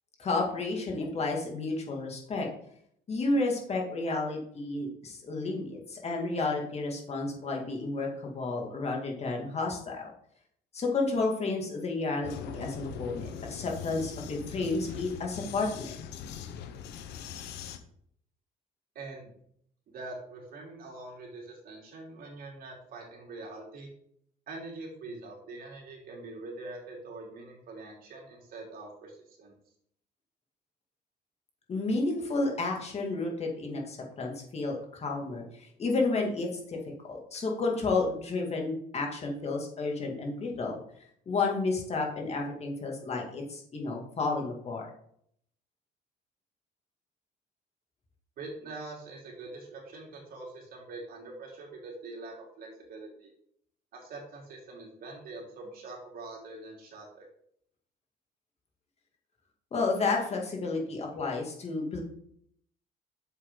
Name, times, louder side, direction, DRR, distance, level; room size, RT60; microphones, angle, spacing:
voice 1, 0.2-2.5 3.1-10.1 10.7-16.0 31.7-36.8 37.0-40.8 41.3-44.8 59.7-62.0, left 3 dB, 40° left, 0 dB, 2.4 m, -31 dB
Vehicle, 12.2-17.8, left 8 dB, 85° left, 1.0 m, -41 dB
voice 2, 19.0-19.3 19.9-23.9 24.5-29.6 48.4-53.3 53.9-57.2, right 2 dB, 60° right, -1 dB, 3.5 m, -44 dB
8.4 x 7.2 x 3.9 m, 0.68 s
cardioid pair, 110°, 17 cm